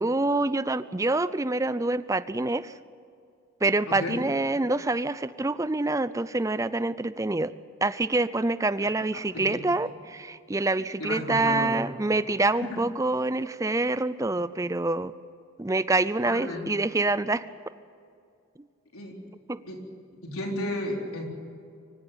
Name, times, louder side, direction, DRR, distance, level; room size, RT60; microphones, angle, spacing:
voice 1, 0.0-2.7 3.6-7.5 7.8-15.1 15.6-17.5 19.5-19.6, right 2 dB, 15° right, 15 dB, 0.4 m, -26 dB
voice 2, 3.9-4.2 9.3-9.6 11.0-11.8 12.6-12.8 16.2-16.6 18.9-19.1 19.7-19.8 20.2-21.2, left 1 dB, 85° left, 1 dB, 4.0 m, -33 dB
24.5 x 16.0 x 8.9 m, 2.4 s
head